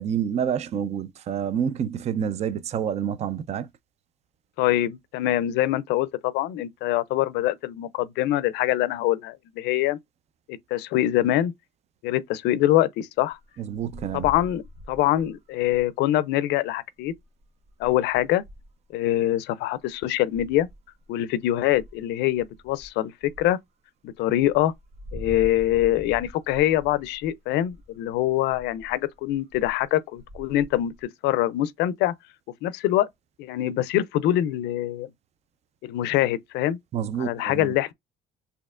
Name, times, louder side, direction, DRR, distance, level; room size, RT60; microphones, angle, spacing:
voice 1, 0.0-3.7 13.6-14.3 36.9-37.7, right 8 dB, 40° right, 0.4 m, -28 dB
voice 2, 4.6-10.0 10.5-11.5 12.0-13.4 14.1-17.1 17.8-18.4 18.9-20.7 21.1-23.6 24.0-24.7 25.1-30.9 31.2-32.1 32.6-33.1 33.4-35.1 35.8-36.8 37.2-37.9, left 13 dB, 85° left, 0.4 m, -24 dB
sound 1, 13.3-16.0 17.0-19.2 19.8-19.9 20.4-21.1 21.5-22.9 23.2-23.5 24.1-24.2 24.3-29.9 30.1-31.0, equal, 65° right, 1.2 m, -44 dB
4.2 x 2.8 x 2.4 m
cardioid pair, 110°, 17 cm